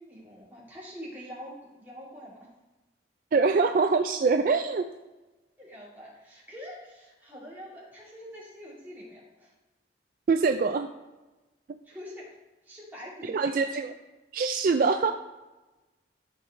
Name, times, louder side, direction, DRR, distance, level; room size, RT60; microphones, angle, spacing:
voice 1, 0.0-2.4 5.6-9.5 11.8-12.3 12.6-13.7, equal, 10° right, -7 dB, 2.6 m, -45 dB
voice 2, 3.3-4.8 10.3-10.9 11.7-11.8 13.2-13.9 14.3-15.1, right 4 dB, 50° right, 7 dB, 0.3 m, -24 dB
13.0 x 4.8 x 3.2 m, 1.1 s
head